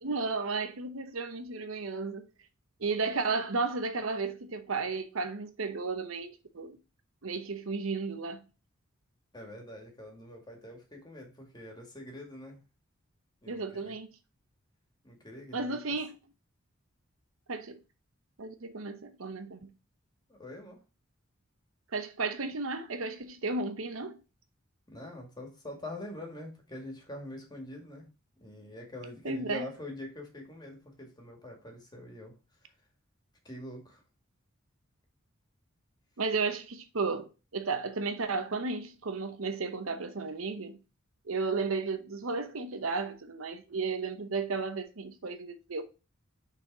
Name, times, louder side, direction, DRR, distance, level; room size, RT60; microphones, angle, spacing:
voice 1, 0.0-2.3 2.8-6.8 7.2-8.4 13.5-14.1 15.5-16.2 17.5-17.8 18.4-19.7 21.9-24.2 29.2-29.7 36.2-40.8 41.3-45.8, right 4 dB, 75° right, 0.9 m, -33 dB
voice 2, 9.3-12.6 13.4-14.0 15.0-15.8 20.3-20.8 24.9-28.1 28.4-32.3 33.4-34.0, left 1 dB, 20° left, 2.1 m, -44 dB
6.6 x 4.2 x 4.8 m
head